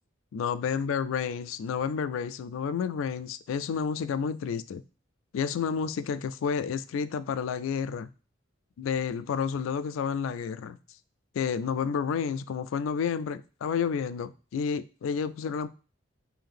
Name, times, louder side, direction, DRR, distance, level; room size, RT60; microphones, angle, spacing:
voice 1, 0.3-4.8 5.3-8.1 8.8-10.8 11.3-15.7, left 6 dB, 80° left, 0.3 m, -30 dB
3.5 x 2.7 x 3.6 m
head